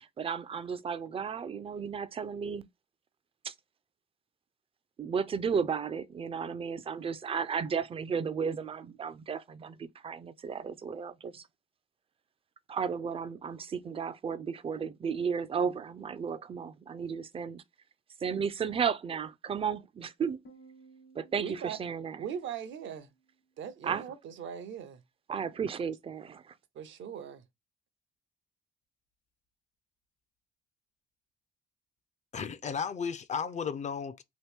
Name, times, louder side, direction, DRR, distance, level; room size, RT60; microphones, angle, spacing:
voice 1, 0.0-2.7 3.4-3.5 5.0-11.4 12.7-17.6 18.2-20.4 21.2-22.2 23.8-24.0 25.3-26.5, right 6 dB, 30° right, 0.4 m, -34 dB
Piano, 20.4-23.9, right 3 dB, 70° left, 1.1 m, -59 dB
voice 2, 21.4-21.8 22.2-23.1 23.6-25.0 26.7-27.4, right 8 dB, 70° right, 0.6 m, -39 dB
voice 3, 32.3-34.2, left 6 dB, 35° left, 0.4 m, -34 dB
2.9 x 2.6 x 3.3 m
cardioid pair, 90°, 20 cm